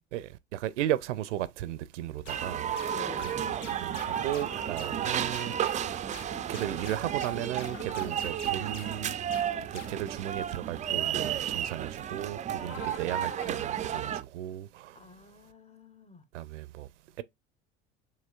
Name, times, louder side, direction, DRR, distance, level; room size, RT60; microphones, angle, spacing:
voice 1, 0.1-2.8 3.2-6.0 6.5-9.1 9.7-15.1 16.3-16.9 17.2-17.3, right 13 dB, 80° right, 0.5 m, -35 dB
sound 1, 2.3-10.1, left 9 dB, 80° left, 0.6 m, -48 dB
sound 2, 2.3-14.2, right 10 dB, 20° right, 0.3 m, -33 dB
voice 2, 2.9-3.4 8.5-8.8 14.9-16.3, left 5 dB, 20° left, 0.8 m, -48 dB
sound 3, 3.4-4.9 6.6-8.4 12.5-13.6, left 3 dB, 40° left, 1.3 m, -47 dB
6.7 x 3.0 x 2.3 m
hypercardioid pair, 65°, 36 cm